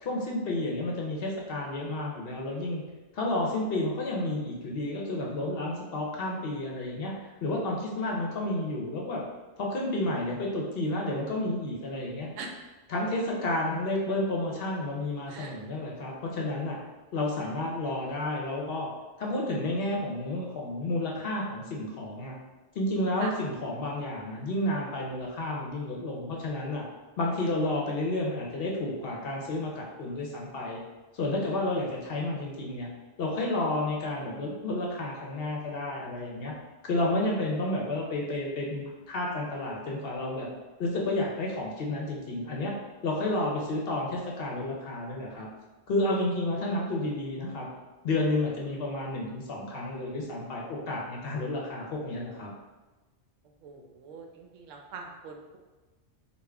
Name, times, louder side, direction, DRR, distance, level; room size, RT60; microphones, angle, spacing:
voice 1, 0.0-2.8 3.1-9.2 9.6-12.3 12.9-16.8 17.1-18.9 19.2-22.4 22.7-26.8 27.2-30.8 31.1-32.9 33.2-36.5 36.8-40.5 40.8-42.7 43.0-45.5 45.9-47.7 48.0-52.5, left 1 dB, 60° left, -2 dB, 0.7 m, -31 dB
voice 2, 53.6-55.6, right 4 dB, 85° right, 2 dB, 0.9 m, -42 dB
3.6 x 2.3 x 3.3 m, 1.2 s
omnidirectional pair, 1.3 m